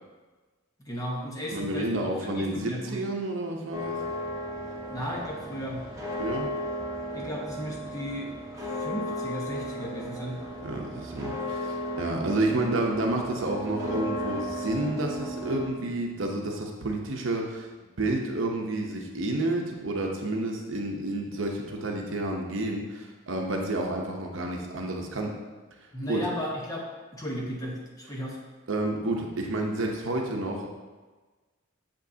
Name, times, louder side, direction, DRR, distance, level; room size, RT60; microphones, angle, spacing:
voice 1, 0.8-3.0 4.9-5.8 7.1-8.3 8.5-10.4 25.9-26.9 27.1-28.4, equal, 15° left, -3 dB, 1.0 m, -35 dB
voice 2, 1.5-4.0 6.2-6.5 10.6-17.7 18.0-25.3 26.1-26.3 28.7-30.7, right 2 dB, 65° right, 1 dB, 0.8 m, -30 dB
sound 1, 3.7-15.7, equal, 15° right, 1.1 m, -35 dB
7.0 x 5.2 x 2.7 m, 1.3 s
head